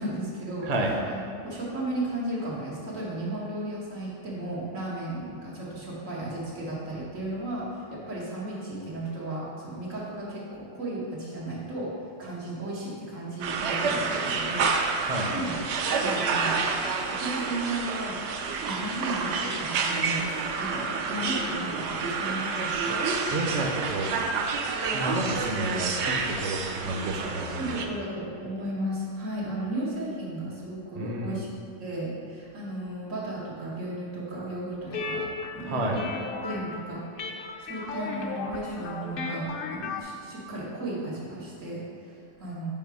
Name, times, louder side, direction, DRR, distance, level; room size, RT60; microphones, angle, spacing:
voice 1, 0.0-0.7 1.1-14.7 15.0-15.6 16.0-16.6 17.0-23.0 27.6-31.5 31.8-35.2 35.5-42.7, right 1 dB, 90° right, -6 dB, 1.8 m, -35 dB
voice 2, 0.6-1.0 15.0-15.3 23.3-24.1 24.9-27.8 31.0-31.4 35.6-36.0, right 1 dB, 40° right, 1 dB, 0.7 m, -30 dB
sound 1, 13.4-27.9, right 4 dB, 70° right, 0.8 m, -29 dB
sound 2, 34.9-40.0, left 3 dB, 55° left, 0.7 m, -35 dB
5.6 x 4.7 x 4.7 m, 2.4 s
omnidirectional pair, 1.3 m